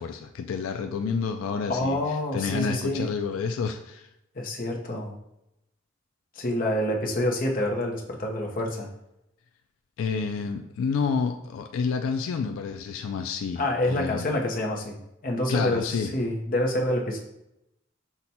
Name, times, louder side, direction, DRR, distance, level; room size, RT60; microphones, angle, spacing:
voice 1, 0.0-2.0 2.3-4.1 10.0-14.3 15.5-16.1, left 5 dB, 80° left, 6 dB, 0.3 m, -29 dB
voice 2, 1.7-3.1 4.3-5.2 6.3-8.9 13.6-17.2, left 1 dB, 40° left, 0 dB, 0.7 m, -27 dB
5.7 x 2.2 x 4.1 m, 0.87 s
head